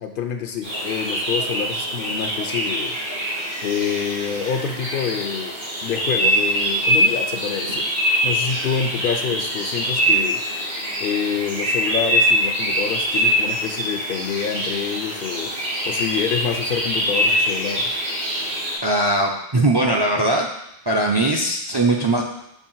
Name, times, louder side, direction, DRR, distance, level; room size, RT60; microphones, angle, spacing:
voice 1, 0.0-3.0 3.6-7.9 8.2-10.6 11.0-15.5 15.8-17.9, left 7 dB, 65° left, 6 dB, 0.7 m, -27 dB
sound 1, 0.6-18.7, equal, 80° right, 2.6 m, -23 dB
voice 2, 18.8-20.5 20.9-22.2, right 2 dB, 40° right, 1 dB, 0.4 m, -20 dB
6.8 x 2.5 x 5.6 m, 0.79 s
omnidirectional pair, 1.0 m